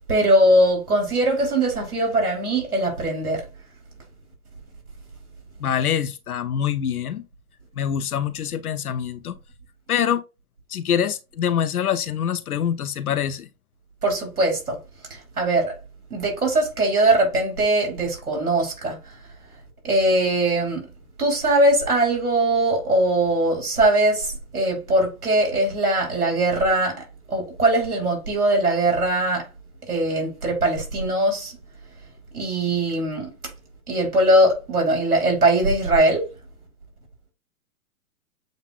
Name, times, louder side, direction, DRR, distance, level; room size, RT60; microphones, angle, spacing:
voice 1, 0.1-3.4 14.0-14.8 15.1-15.8 16.1-19.0 19.8-20.9 21.2-29.5 29.9-31.5 32.3-33.3 33.9-36.3, right 1 dB, 85° right, 3.2 m, -21 dB
voice 2, 5.6-7.2 7.8-9.3 9.9-10.2 10.7-13.5, left 9 dB, 75° left, 0.8 m, -25 dB
7.9 x 2.7 x 2.4 m
hypercardioid pair, 115°, 44 cm